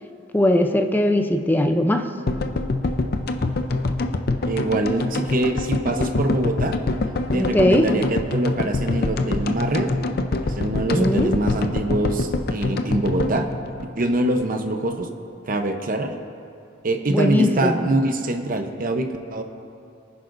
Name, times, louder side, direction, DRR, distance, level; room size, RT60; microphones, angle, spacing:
voice 1, 0.3-2.1 7.3-7.9 10.9-11.3 17.1-17.9, left 1 dB, 10° left, 5 dB, 0.6 m, -19 dB
sound 1, 2.3-14.5 14.7-14.8 15.0-15.1, left 2 dB, 50° left, 0.6 m, -25 dB
voice 2, 4.5-6.8 7.3-9.9 10.4-13.5 14.0-15.1 15.5-16.1 16.8-19.4, right 2 dB, 45° right, 6 dB, 0.8 m, -24 dB
23.0 x 10.0 x 2.6 m, 2.5 s
head